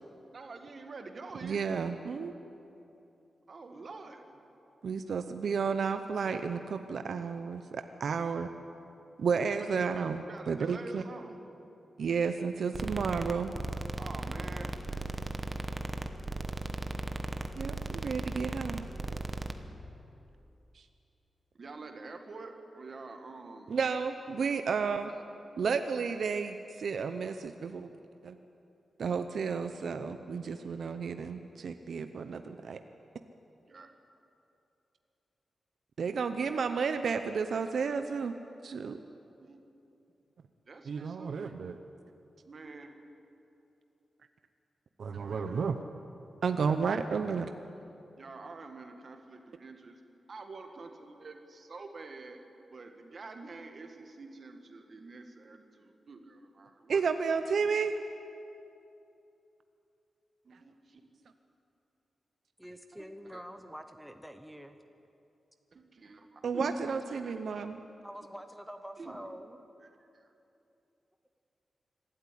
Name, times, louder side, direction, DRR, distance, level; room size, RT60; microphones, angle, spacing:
voice 1, 0.3-1.7 3.5-4.4 9.8-10.0 10.3-11.4 14.0-14.7 21.5-23.7 24.8-25.2 33.6-33.9 37.8-38.0 39.4-39.6 40.6-41.5 42.4-42.9 45.1-45.7 48.2-50.0 50.3-52.4 52.7-57.0 60.4-61.0 63.0-63.4 65.7-66.8 67.1-67.3 69.0-69.3 69.8-69.9 70.2-70.3, right 3 dB, 40° right, 5 dB, 1.8 m, -46 dB
voice 2, 1.4-2.3 4.8-8.5 9.2-11.0 12.0-13.5 17.6-18.9 20.7-20.9 23.7-25.1 25.6-27.9 28.2-28.4 29.0-32.8 36.0-38.4 38.6-39.0 40.9-41.8 45.0-45.8 46.4-47.5 56.9-57.9 66.4-67.8, right 5 dB, 60° right, 8 dB, 0.7 m, -32 dB
sound 1, 12.7-19.5, right 2 dB, 20° right, 1.1 m, -36 dB
voice 3, 62.6-64.8 68.0-69.6, equal, ahead, 7 dB, 0.8 m, -46 dB
24.5 x 12.5 x 9.9 m, 2.8 s
wide cardioid pair, 175°, 0 cm